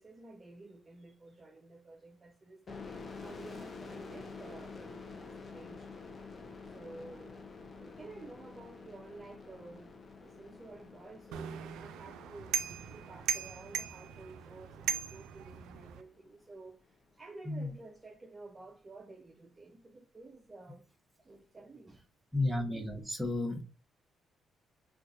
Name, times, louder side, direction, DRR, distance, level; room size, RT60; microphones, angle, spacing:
voice 1, 0.0-6.0 6.7-7.5 7.8-9.9 10.2-20.9 21.2-22.1, right 2 dB, 30° right, 0.5 m, -52 dB
sound 1, 2.7-16.1, left 4 dB, 40° left, 0.6 m, -49 dB
sound 2, 11.3-16.0, right 8 dB, 90° right, 0.3 m, -38 dB
voice 2, 22.3-23.6, left 2 dB, 5° right, 1.0 m, -32 dB
4.4 x 2.4 x 2.5 m
cardioid pair, 90°, 0 cm